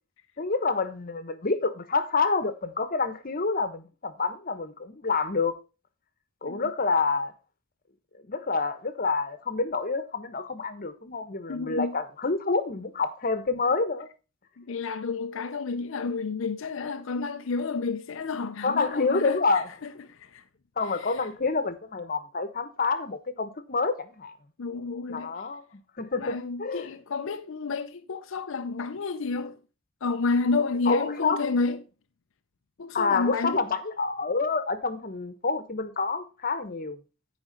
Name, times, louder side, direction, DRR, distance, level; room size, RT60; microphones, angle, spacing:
voice 1, 0.4-5.5 6.4-7.3 8.3-14.1 18.6-19.7 20.8-24.3 25.1-26.9 30.9-31.4 32.9-37.0, left 4 dB, 40° left, 1.0 m, -28 dB
voice 2, 11.5-12.0 14.6-19.4 19.8-20.4 21.0-21.1 24.6-25.3 26.2-29.6 30.0-31.8 32.8-33.6, left 4 dB, 65° left, 0.5 m, -30 dB
10.0 x 5.1 x 5.1 m
head